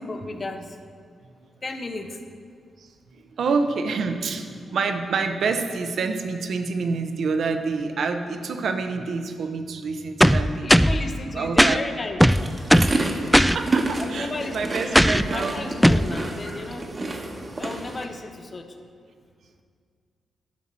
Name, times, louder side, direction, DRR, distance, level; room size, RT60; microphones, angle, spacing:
voice 1, 0.1-0.8 1.6-2.2 10.6-12.2 14.0-15.0 15.3-17.2 17.6-18.8, left 3 dB, 45° left, 5 dB, 1.0 m, -34 dB
voice 2, 2.8-10.7 11.3-11.8 12.7-13.0 13.5-15.7, right 4 dB, 70° right, 6 dB, 0.7 m, -27 dB
sound 1, 10.2-11.0 11.6-11.8 12.2-13.0 13.3-13.6 14.9-15.3 15.8-16.1, equal, ahead, 0.3 m, -16 dB
sound 2, 12.3-18.1, right 2 dB, 40° right, 1.1 m, -30 dB
11.5 x 5.9 x 4.4 m, 2.1 s
supercardioid pair, 45°, 0 cm